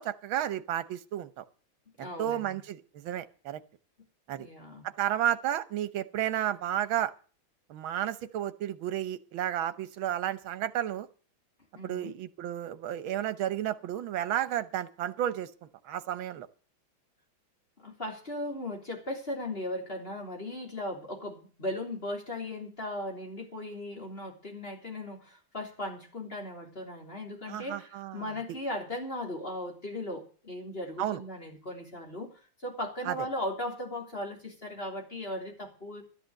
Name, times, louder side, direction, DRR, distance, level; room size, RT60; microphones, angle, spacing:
voice 1, 0.0-1.4 2.0-3.6 4.3-4.5 5.0-7.1 7.7-11.1 11.8-15.5 15.8-16.5 27.5-28.3 31.0-31.2 33.0-33.3, right 11 dB, 80° right, 13 dB, 1.7 m, -32 dB
voice 2, 2.0-2.6 4.4-4.9 11.7-12.1 17.8-36.0, left 1 dB, 25° left, 1 dB, 3.5 m, -37 dB
13.0 x 10.5 x 6.5 m, 0.39 s
omnidirectional pair, 2.2 m